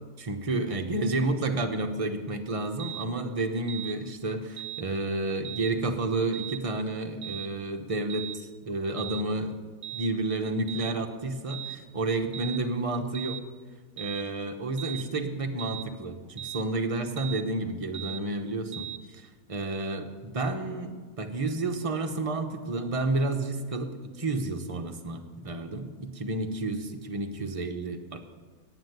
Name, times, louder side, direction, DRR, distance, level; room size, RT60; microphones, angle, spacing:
voice 1, 0.2-9.6 9.9-13.4 14.0-28.2, right 2 dB, 30° right, 5 dB, 0.8 m, -31 dB
sound 1, 2.8-3.1 3.7-4.0 4.6-4.8 5.4-5.7 6.3-6.6 7.2-7.5 8.1-8.4 9.0-9.3 9.8-10.1 10.7-11.0 11.5-11.8 12.3-12.6 13.1-13.4 14.0-14.3 14.8-15.1 15.6-15.9 16.4-16.7 17.2-17.4 17.9-18.2 18.7-19.0, right 13 dB, 50° right, 1.3 m, -38 dB
9.6 x 8.1 x 9.3 m, 1.5 s
omnidirectional pair, 1.6 m